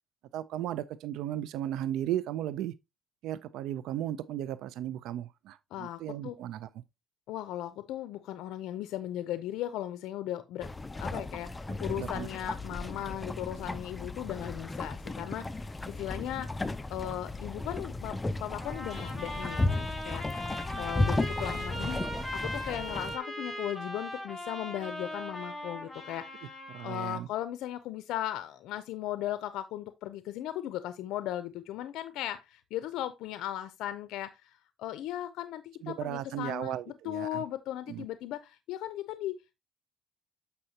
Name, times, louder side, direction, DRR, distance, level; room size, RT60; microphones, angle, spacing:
voice 1, 0.3-2.7 3.2-6.7 11.9-12.3 26.7-27.3 35.8-37.4 37.9-38.0, right 12 dB, 85° right, 0.4 m, -35 dB
voice 2, 5.7-6.4 7.3-10.7 11.0-16.6 16.9-20.3 20.8-22.0 22.3-26.6 26.8-39.6, left 12 dB, 85° left, 0.5 m, -37 dB
sound 1, 10.6-23.2, left 2 dB, 15° left, 0.5 m, -34 dB
Trumpet, 18.6-27.2, equal, ahead, 4.4 m, -39 dB
7.8 x 5.5 x 2.8 m
cardioid pair, 100°, 0 cm